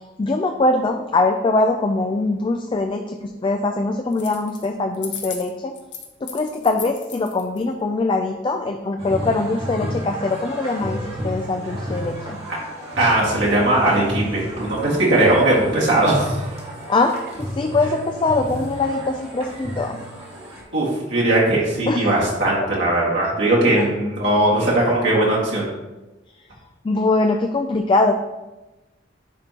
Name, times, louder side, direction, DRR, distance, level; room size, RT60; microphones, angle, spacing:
voice 1, 0.2-5.7 6.2-12.4 16.9-20.0 21.9-22.1 22.6-22.7 23.8-23.9 26.8-28.1, left 2 dB, 25° left, 4 dB, 0.3 m, -22 dB
sound 1, 4.1-4.7 4.9-7.6, left 8 dB, 70° left, 0.9 m, -35 dB
sound 2, 9.0-20.6, equal, 35° right, 1.5 m, -32 dB
voice 2, 13.0-16.4 20.7-25.7, right 1 dB, 70° right, -6 dB, 1.8 m, -19 dB
9.7 x 3.5 x 2.9 m, 1.1 s
head